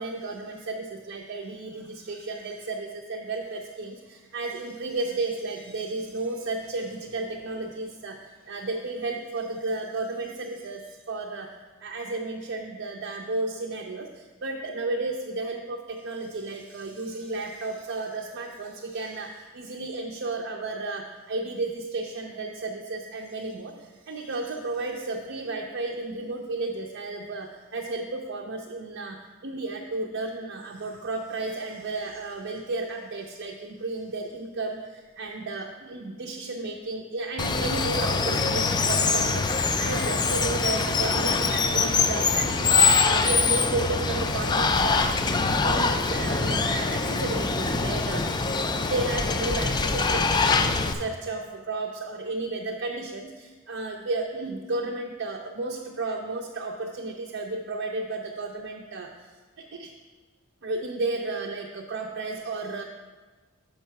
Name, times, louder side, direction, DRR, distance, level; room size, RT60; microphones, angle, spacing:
voice 1, 0.0-11.5 11.8-23.7 24.1-29.2 29.4-45.1 45.4-48.2 48.5-59.3 59.7-59.9 60.6-62.8, right 3 dB, 60° right, 0 dB, 0.6 m, -33 dB
Water, 37.4-50.9, left 4 dB, 20° left, 0.3 m, -24 dB
6.5 x 5.4 x 5.7 m, 1.3 s
head